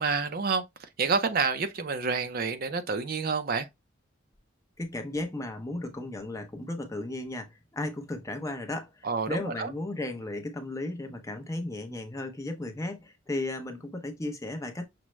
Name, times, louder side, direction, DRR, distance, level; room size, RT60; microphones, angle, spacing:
voice 1, 0.0-3.7 9.0-9.7, right 4 dB, 50° right, 0.5 m, -29 dB
voice 2, 4.8-14.9, left 2 dB, 15° left, 0.6 m, -35 dB
6.0 x 2.1 x 3.1 m
head